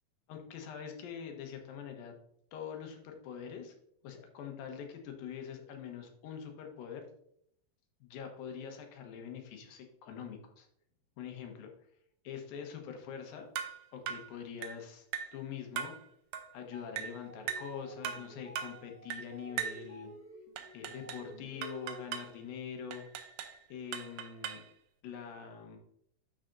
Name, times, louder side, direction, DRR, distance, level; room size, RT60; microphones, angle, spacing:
voice 1, 0.3-2.1 2.5-3.7 4.0-7.1 8.0-10.7 11.2-11.7 12.2-13.5 13.9-15.1 15.3-15.9 16.5-20.1 20.7-23.0 23.7-24.7 25.0-25.8, left 7 dB, 80° left, 3 dB, 2.9 m, -44 dB
sound 1, 13.6-13.8 14.1-14.3 14.6-14.8 15.1-15.4 15.8-16.0 16.3-16.5 17.0-17.2 17.5-17.7 18.0-18.3 18.6-18.8 19.1-19.3 19.6-19.8 20.6-21.3 21.6-22.3 22.9-23.6 23.9-24.7, right 9 dB, 75° right, 2.3 m, -39 dB
sound 2, 16.6-22.4, right 1 dB, 20° right, 3.0 m, -52 dB
12.0 x 5.0 x 2.6 m, 0.70 s
omnidirectional pair, 4.1 m